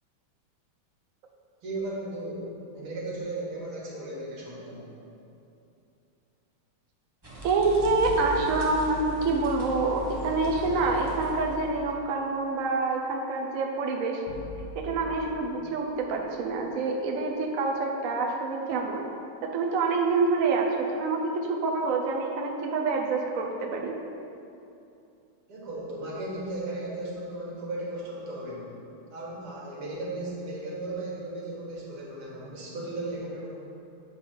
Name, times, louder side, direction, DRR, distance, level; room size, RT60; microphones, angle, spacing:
voice 1, 1.6-4.8 25.5-28.7 29.1-33.5, right 2 dB, 80° right, -5 dB, 2.5 m, -36 dB
sound 1, 7.2-11.9, left 2 dB, 25° right, 0.5 m, -39 dB
voice 2, 7.4-14.2 14.7-19.0 19.4-23.9, right 3 dB, 65° right, 0 dB, 0.8 m, -27 dB
sound 2, 7.8-10.0 14.3-17.5, left 1 dB, 75° left, 1.6 m, -43 dB
8.5 x 4.1 x 5.7 m, 2.7 s
omnidirectional pair, 2.4 m